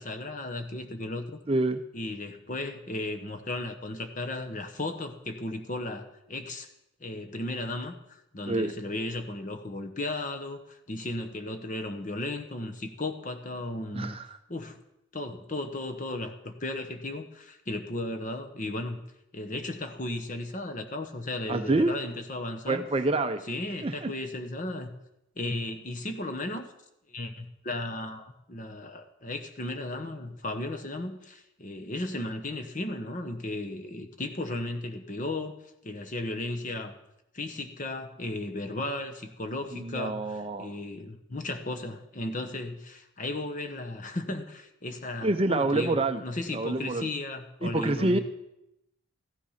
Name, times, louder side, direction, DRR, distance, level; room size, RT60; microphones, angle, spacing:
voice 1, 0.0-1.4 1.9-6.7 7.0-14.2 14.5-14.8 15.1-19.0 19.3-22.8 23.4-24.9 25.4-26.7 27.1-35.6 35.8-36.9 37.3-48.2, left 2 dB, 35° left, 6 dB, 1.1 m, -35 dB
voice 2, 1.5-1.8 8.5-8.7 13.9-14.2 21.5-22.0 22.7-23.4 23.8-24.1 39.7-40.7 45.2-46.2 46.5-47.1 47.6-48.2, right 2 dB, 25° right, 9 dB, 0.5 m, -27 dB
14.5 x 10.0 x 5.7 m, 0.85 s
head